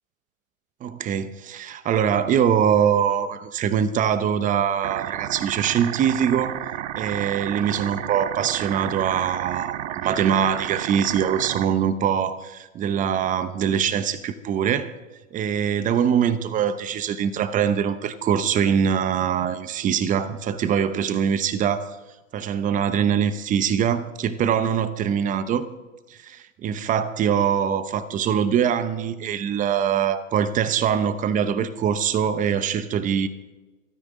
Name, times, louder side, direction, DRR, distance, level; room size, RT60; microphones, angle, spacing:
voice 1, 0.8-6.6 6.9-14.9 15.3-22.0 22.3-25.7 26.1-33.3, right 8 dB, 20° right, 13 dB, 0.8 m, -23 dB
sound 1, 4.8-11.7, right 12 dB, 60° right, 0.8 m, -32 dB
28.5 x 9.7 x 3.8 m, 1.2 s
hypercardioid pair, 120°, 42 cm